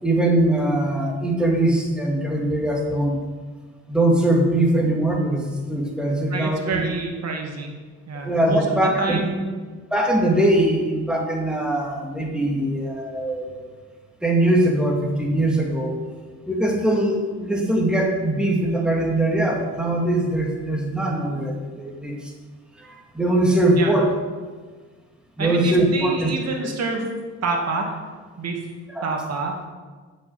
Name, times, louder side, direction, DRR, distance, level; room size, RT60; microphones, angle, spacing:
voice 1, 0.0-3.2 3.9-6.8 8.2-9.2 9.9-13.6 14.2-16.0 16.5-22.3 22.8-24.1 25.4-26.3 28.9-29.1, right 1 dB, 5° right, -1 dB, 2.4 m, -21 dB
voice 2, 6.3-7.7 8.1-9.5 23.8-23.9 25.4-27.1 27.4-28.0 28.4-28.6 29.0-29.5, right 3 dB, 55° right, 1 dB, 2.2 m, -27 dB
7.8 x 6.5 x 8.1 m, 1.4 s
cardioid pair, 90°, 30 cm